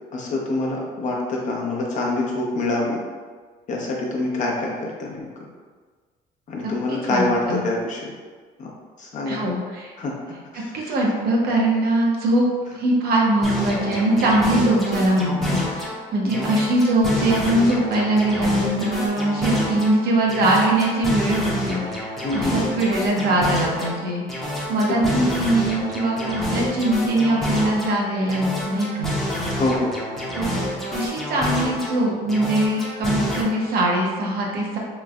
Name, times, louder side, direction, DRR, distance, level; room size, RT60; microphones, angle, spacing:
voice 1, 0.1-3.0 3.7-5.3 6.5-8.1 8.6-8.7 9.0-9.4 10.0-10.1 10.5-10.9 16.2-16.5 22.2-22.6 24.9-25.1 29.6-30.0, left 2 dB, 45° left, -2 dB, 0.7 m, -26 dB
voice 2, 6.6-7.6 9.3-9.9 10.7-12.5 12.7-15.8 16.1-29.1 30.3-34.8, right 1 dB, 65° right, -2 dB, 0.8 m, -22 dB
sound 1, 13.4-16.0 16.3-20.0 20.3-24.0 24.3-28.0 28.3-32.0 32.3-33.4, left 1 dB, ahead, 0.7 m, -28 dB
3.1 x 3.1 x 2.4 m, 1.5 s
cardioid pair, 110°, 17 cm